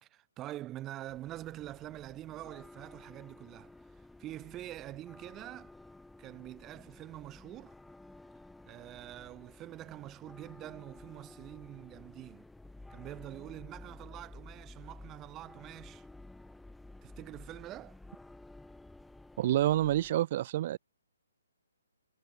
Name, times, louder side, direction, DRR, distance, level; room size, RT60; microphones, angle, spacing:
voice 1, 0.0-3.8 4.2-5.7 6.2-7.8 8.7-12.5 12.9-16.1 17.0-18.0, right 14 dB, 20° right, 2.9 m, -45 dB
sound 1, 1.1-20.1, left 2 dB, 5° left, 4.1 m, -53 dB
voice 2, 19.4-20.8, right 13 dB, 40° right, 0.4 m, -28 dB
hypercardioid pair, 145°, 0 cm